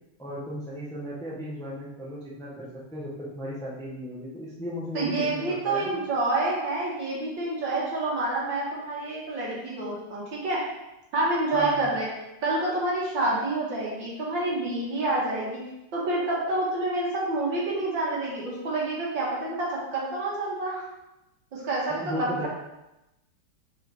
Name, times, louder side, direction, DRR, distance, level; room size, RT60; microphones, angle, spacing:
voice 1, 0.2-6.0 11.5-11.9 21.9-22.5, equal, ahead, -6 dB, 1.0 m, -36 dB
voice 2, 4.9-10.6 11.1-12.1 12.4-15.6 15.9-20.8 21.5-22.3, right 2 dB, 65° right, -5 dB, 2.5 m, -28 dB
6.7 x 5.7 x 3.6 m, 0.94 s
omnidirectional pair, 2.3 m